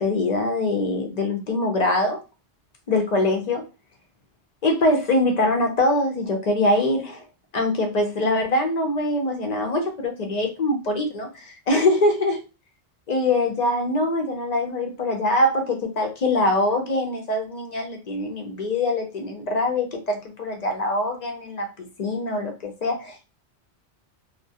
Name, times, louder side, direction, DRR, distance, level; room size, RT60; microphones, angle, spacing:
voice 1, 0.0-2.2 2.9-3.6 4.6-7.2 7.5-12.4 13.1-23.3, left 2 dB, 55° left, 3 dB, 0.4 m, -23 dB
2.2 x 2.1 x 2.7 m, 0.30 s
omnidirectional pair, 1.1 m